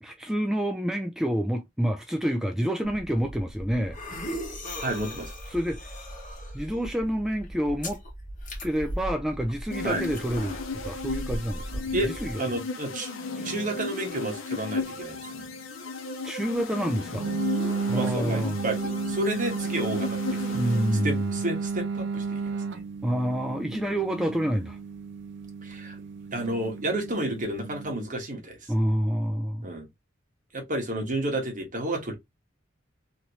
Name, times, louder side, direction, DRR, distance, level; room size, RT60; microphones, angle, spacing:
voice 1, 0.0-4.0 5.5-6.0 6.5-8.0 8.6-12.3 13.4-13.5 16.2-17.3 17.9-18.6 20.5-21.3 23.0-24.8 28.7-29.7, equal, 5° right, 0.3 m, -28 dB
sound 1, 2.8-12.3, equal, 40° left, 1.3 m, -38 dB
voice 2, 4.8-5.3 9.8-10.0 11.9-13.1 13.4-15.4 17.9-20.7 21.0-22.6 25.6-26.0 26.3-28.7 29.6-29.9 30.5-32.1, right 1 dB, 40° right, 1.3 m, -31 dB
sound 2, 9.7-21.5, left 3 dB, 80° left, 0.7 m, -35 dB
sound 3, 17.1-27.9, right 5 dB, 65° right, 0.5 m, -33 dB
3.0 x 2.9 x 2.6 m
head